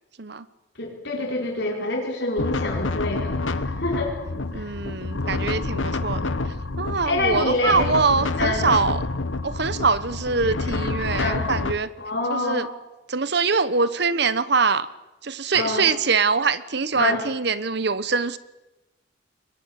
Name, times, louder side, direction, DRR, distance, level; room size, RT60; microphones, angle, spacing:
voice 1, 0.8-4.1 4.5-4.7 7.0-7.9 8.4-8.6 11.2-11.5 12.0-12.7 15.5-15.9 16.9-17.2, left 2 dB, 60° left, 0 dB, 5.0 m, -26 dB
sound 1, 2.4-11.7, left 3 dB, 85° left, 1.3 m, -28 dB
voice 2, 4.5-6.3 6.8-9.0 9.4-11.9 12.3-12.7 13.1-14.9 15.2-18.4, right 4 dB, 55° right, 15 dB, 1.1 m, -23 dB
29.0 x 22.5 x 8.2 m, 1.0 s
head